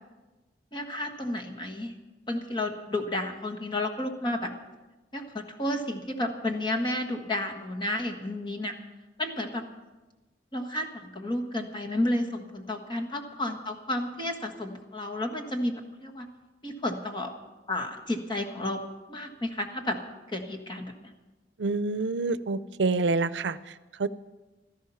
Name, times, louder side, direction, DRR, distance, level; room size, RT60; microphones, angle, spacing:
voice 1, 0.7-1.9 2.3-4.5 5.1-8.7 9.2-9.6 10.5-16.3 16.6-17.3 17.7-18.8 19.1-20.0 20.3-21.1, left 1 dB, 25° left, 4 dB, 1.6 m, -31 dB
voice 2, 21.6-23.6 24.0-24.1, right 3 dB, 85° right, 15 dB, 0.5 m, -27 dB
16.0 x 13.5 x 5.7 m, 1.1 s
head